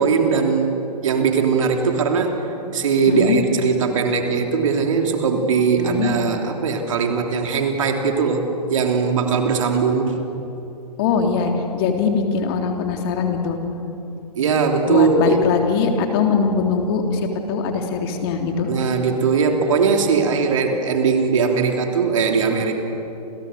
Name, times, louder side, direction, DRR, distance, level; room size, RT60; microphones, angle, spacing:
voice 1, 0.0-2.4 2.7-8.4 8.7-10.2 14.4-15.4 18.7-22.7, right 5 dB, 55° right, 4 dB, 3.3 m, -20 dB
voice 2, 3.1-3.4 5.8-6.1 11.0-13.6 14.9-17.2 17.5-18.7, left 6 dB, 40° left, 3 dB, 3.3 m, -21 dB
30.0 x 28.5 x 6.8 m, 2.9 s
figure-of-eight pair, 115°, 20 cm